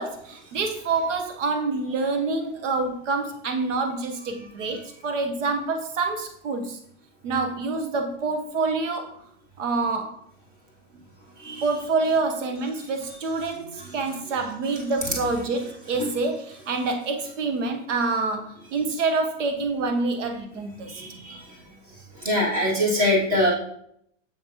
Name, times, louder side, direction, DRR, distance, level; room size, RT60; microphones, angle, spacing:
voice 1, 0.0-6.8 7.2-9.1 9.6-10.2 11.6-21.0, right 3 dB, 80° right, 6 dB, 1.0 m, -27 dB
voice 2, 20.9-21.4 22.2-23.5, left 1 dB, 25° right, -4 dB, 2.3 m, -23 dB
7.6 x 7.0 x 2.8 m, 0.69 s
supercardioid pair, 170°, 36 cm